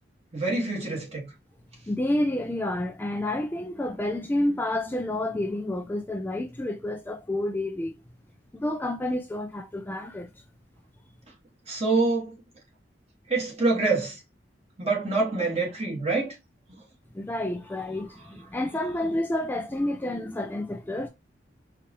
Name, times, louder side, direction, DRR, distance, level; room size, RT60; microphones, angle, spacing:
voice 1, 0.3-1.3 11.7-12.3 13.3-14.2 14.8-16.3, right 3 dB, 35° right, 1.7 m, -26 dB
voice 2, 1.9-8.0 8.5-10.3 17.1-21.1, left 1 dB, 10° left, 0.3 m, -29 dB
4.4 x 2.5 x 3.0 m
head